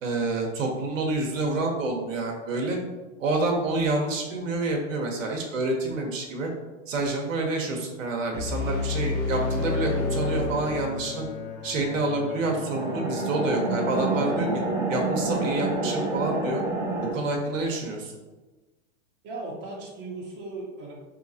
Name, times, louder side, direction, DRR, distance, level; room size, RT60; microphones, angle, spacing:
voice 1, 0.0-2.8 3.2-6.5 6.9-11.3 11.6-14.5 14.9-16.6 17.1-18.1, right 2 dB, 80° right, 1 dB, 0.9 m, -28 dB
sound 1, 8.3-11.4, left 3 dB, 25° left, 0.8 m, -29 dB
Bowed string instrument, 9.3-14.8, left 4 dB, 85° left, 0.8 m, -37 dB
sound 2, 12.4-17.1, right 2 dB, 10° right, 0.5 m, -28 dB
voice 2, 19.2-20.9, right 2 dB, 30° right, -3 dB, 0.9 m, -37 dB
3.8 x 2.8 x 2.6 m, 1.2 s
hypercardioid pair, 125°, 38 cm